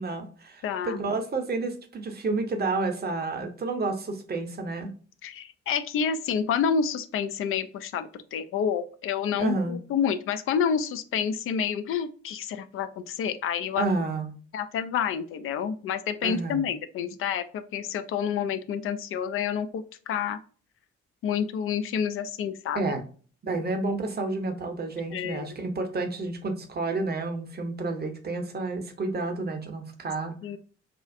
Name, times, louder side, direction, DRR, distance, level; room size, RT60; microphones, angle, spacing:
voice 1, 0.0-4.9 9.4-9.8 13.8-14.3 16.2-16.6 22.7-23.0 23.4-30.4, right 3 dB, 25° right, 5 dB, 0.8 m, -30 dB
voice 2, 0.6-1.0 5.2-13.9 14.5-20.4 21.2-22.8 25.1-25.5 30.4-30.6, left 7 dB, 40° left, 11 dB, 0.4 m, -29 dB
4.3 x 2.3 x 2.4 m, 0.41 s
figure-of-eight pair, 40°, 35 cm